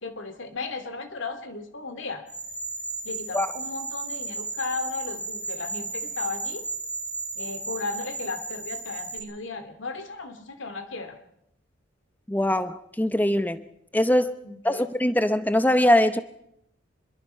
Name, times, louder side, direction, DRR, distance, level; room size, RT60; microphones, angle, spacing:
voice 1, 0.0-2.3 3.0-6.6 7.4-11.2 14.4-14.9, left 3 dB, 90° left, 9 dB, 2.4 m, -35 dB
sound 1, 2.3-9.2, right 3 dB, 60° left, 5.2 m, -34 dB
voice 2, 12.3-13.6 13.9-14.3 14.6-16.2, left 1 dB, 10° left, 11 dB, 0.7 m, -22 dB
26.0 x 22.0 x 5.5 m, 0.77 s
head